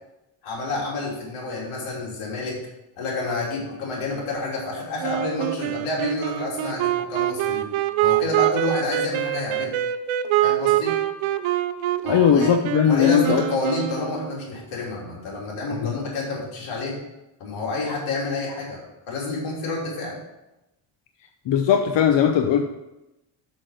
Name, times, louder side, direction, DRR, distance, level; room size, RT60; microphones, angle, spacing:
voice 1, 0.4-2.6 3.0-7.7 8.0-9.7 10.4-10.9 12.0-12.5 12.8-17.0 17.4-18.8 19.1-20.2, left 2 dB, 90° left, -3 dB, 3.2 m, -29 dB
Wind instrument woodwind instrument, 5.0-14.5, right 13 dB, 75° right, 0.7 m, -25 dB
voice 2, 12.1-13.4 15.8-16.0 21.5-22.6, left 8 dB, 60° left, 5 dB, 0.8 m, -18 dB
6.3 x 6.2 x 6.5 m, 0.97 s
cardioid pair, 100°, 49 cm